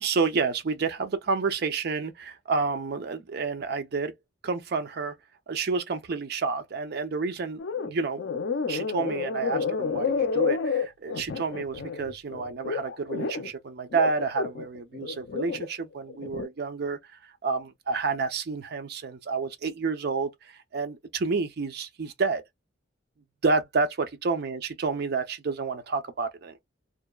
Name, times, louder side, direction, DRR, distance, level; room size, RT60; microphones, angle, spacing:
voice 1, 0.0-4.1 4.4-5.1 5.5-17.0 17.4-22.4 23.4-26.6, right 4 dB, 60° right, 0.5 m, -29 dB
sound 1, 7.6-7.9 8.2-13.5 13.9-15.7 16.1-16.5, left 5 dB, 70° left, 0.5 m, -30 dB
2.8 x 2.1 x 2.2 m
head